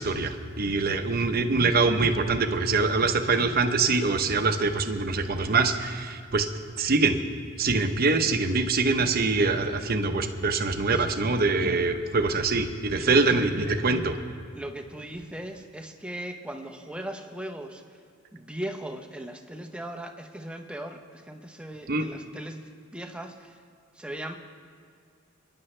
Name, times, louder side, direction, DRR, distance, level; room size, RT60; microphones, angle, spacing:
voice 1, 0.0-6.5 6.8-7.2 7.6-14.1 21.9-22.1, right 3 dB, 45° right, 7 dB, 0.9 m, -24 dB
voice 2, 13.0-13.5 14.5-17.8 18.3-22.6 22.9-23.6 23.9-24.3, right 1 dB, 5° right, 4 dB, 0.9 m, -38 dB
28.5 x 10.5 x 3.3 m, 2.2 s
head